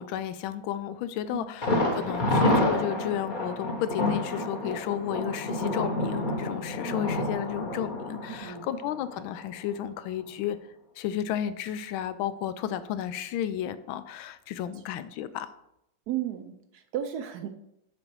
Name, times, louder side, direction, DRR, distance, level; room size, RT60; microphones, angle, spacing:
voice 1, 0.0-10.6 11.0-15.5, left 10 dB, 90° left, 13 dB, 1.4 m, -33 dB
Thunder, 1.6-9.4 9.7-9.8 10.2-10.3, left 1 dB, 35° left, 0.9 m, -28 dB
voice 2, 8.3-8.7 14.7-14.8 16.1-17.5, right 11 dB, 75° right, 8 dB, 0.9 m, -34 dB
6.7 x 5.3 x 4.5 m, 0.82 s
omnidirectional pair, 2.1 m